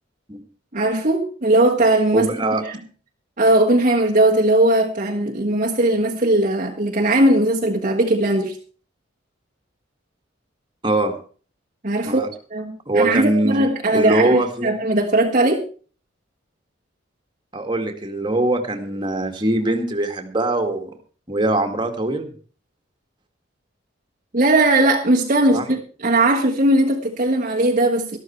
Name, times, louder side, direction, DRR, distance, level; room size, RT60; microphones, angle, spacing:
voice 1, 0.7-2.3 2.6-2.8 3.4-8.6 11.8-12.2 12.5-15.6 24.3-28.2, right 1 dB, 40° right, -1 dB, 1.5 m, -18 dB
voice 2, 2.1-2.6 10.8-11.2 12.1-12.3 12.9-13.7 13.9-14.7 17.5-20.9 21.3-22.3 25.5-25.6, right 1 dB, 25° right, 4 dB, 2.1 m, -22 dB
13.0 x 13.0 x 4.5 m, 0.40 s
head